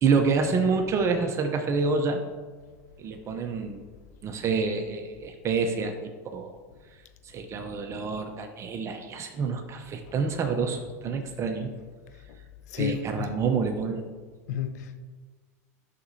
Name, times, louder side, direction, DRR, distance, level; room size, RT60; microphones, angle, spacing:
voice 1, 0.0-2.2 3.0-3.8 4.2-5.9 6.3-6.5 7.3-11.7 12.8-14.0, right 5 dB, 35° right, 0.8 m, -27 dB
voice 2, 12.7-13.3 14.5-15.0, left 7 dB, 75° left, 0.7 m, -31 dB
11.5 x 6.1 x 2.8 m
hypercardioid pair, 105°, 9 cm